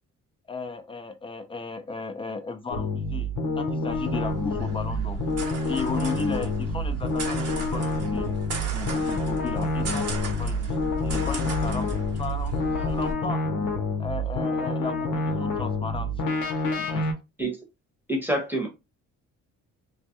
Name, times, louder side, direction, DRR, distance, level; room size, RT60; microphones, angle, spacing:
voice 1, 0.5-5.2 5.7-8.3 8.7-10.8 11.0-13.4 14.0-16.1 16.7-17.1, left 4 dB, 20° left, 0.5 m, -35 dB
sound 1, 2.7-17.1, left 2 dB, 90° left, 0.8 m, -28 dB
sound 2, 3.9-13.1, left 1 dB, 55° right, 0.9 m, -34 dB
voice 2, 18.1-18.7, right 1 dB, 5° right, 0.9 m, -26 dB
2.3 x 2.2 x 2.8 m
cardioid pair, 90°, 30 cm